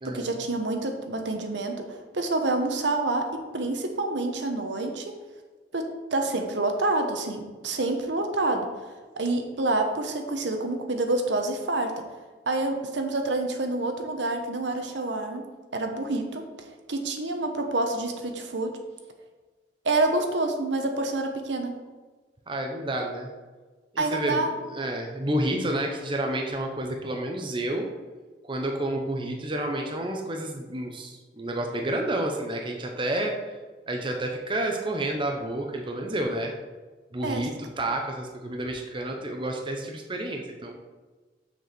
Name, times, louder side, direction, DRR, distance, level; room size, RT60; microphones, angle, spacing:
voice 1, 0.0-5.1 5.7-8.7 9.2-12.0 12.5-15.4 15.7-16.5 16.9-18.8 19.8-21.8 24.0-24.5 37.2-37.5, right 2 dB, 65° right, 4 dB, 1.0 m, -27 dB
voice 2, 22.5-23.3 23.9-27.9 28.4-33.3 33.9-36.5 37.1-40.8, right 1 dB, 25° right, 2 dB, 0.8 m, -30 dB
6.5 x 4.7 x 6.8 m, 1.3 s
head